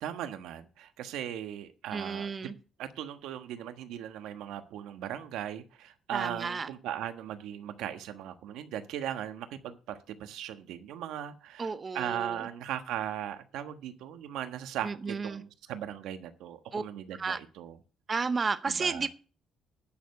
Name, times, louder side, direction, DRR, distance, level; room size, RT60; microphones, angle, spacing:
voice 1, 0.0-2.5 2.8-17.8 18.7-19.1, right 10 dB, 85° right, 1.2 m, -38 dB
voice 2, 1.9-2.5 6.1-6.7 11.6-12.5 14.8-15.4 16.7-16.8 17.2-17.4 18.1-19.1, right 4 dB, 25° right, 0.6 m, -32 dB
10.0 x 6.9 x 6.5 m
cardioid pair, 150°, 0 cm